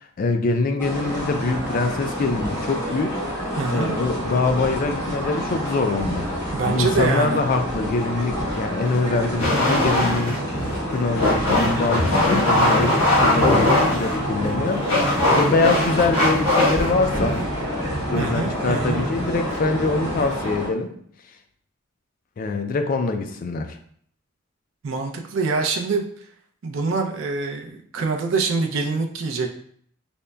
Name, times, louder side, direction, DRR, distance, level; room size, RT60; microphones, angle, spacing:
voice 1, 0.2-3.2 3.7-6.3 6.6-10.4 10.9-14.8 15.2-17.4 18.1-20.9 22.4-23.8, left 3 dB, 45° left, 7 dB, 0.3 m, -24 dB
sound 1, 0.8-20.7, equal, 15° left, 1.0 m, -28 dB
voice 2, 3.6-3.9 6.5-7.4 18.2-19.0 24.8-26.0 26.6-29.5, right 4 dB, 70° right, 3 dB, 0.4 m, -24 dB
sound 2, 9.4-20.5, left 1 dB, 85° left, 1.1 m, -22 dB
5.1 x 2.1 x 2.2 m, 0.63 s
head